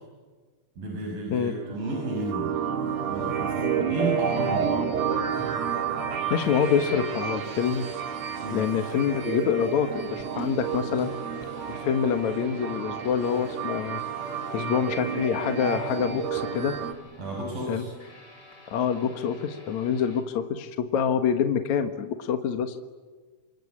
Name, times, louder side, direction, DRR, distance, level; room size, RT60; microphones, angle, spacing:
voice 1, 0.8-2.5 3.1-4.8 8.4-8.7 17.2-17.9, right 1 dB, 80° right, -2 dB, 7.8 m, -32 dB
sound 1, 1.5-16.9, right 7 dB, 55° right, 3.1 m, -30 dB
voice 2, 6.3-7.8 8.5-11.1 11.7-14.0 14.5-16.8 17.7-17.8 18.7-22.8, left 7 dB, 60° left, 7 dB, 2.6 m, -26 dB
sound 2, 10.1-20.2, left 1 dB, 30° left, 5.0 m, -50 dB
27.0 x 25.5 x 8.6 m, 1.4 s
omnidirectional pair, 4.0 m